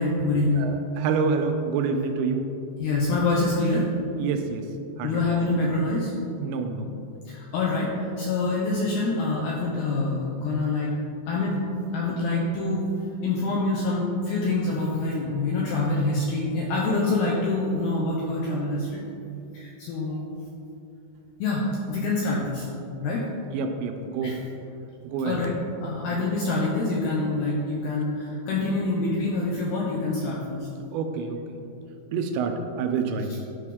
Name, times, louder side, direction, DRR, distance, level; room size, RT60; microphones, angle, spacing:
voice 1, 0.0-0.7 2.8-3.9 5.0-6.1 7.3-10.9 11.3-11.6 11.9-12.9 13.2-19.0 19.5-20.2 21.4-22.7 23.0-23.2 24.2-24.4 25.2-25.5 25.8-30.7, left 2 dB, 85° left, -3 dB, 2.3 m, -26 dB
voice 2, 0.5-2.5 4.2-4.7 5.0-5.2 6.4-7.0 23.5-24.4 25.0-25.5 30.9-31.4 32.1-33.3, right 5 dB, 85° right, 5 dB, 2.8 m, -27 dB
11.5 x 5.0 x 3.6 m, 2.6 s
omnidirectional pair, 5.3 m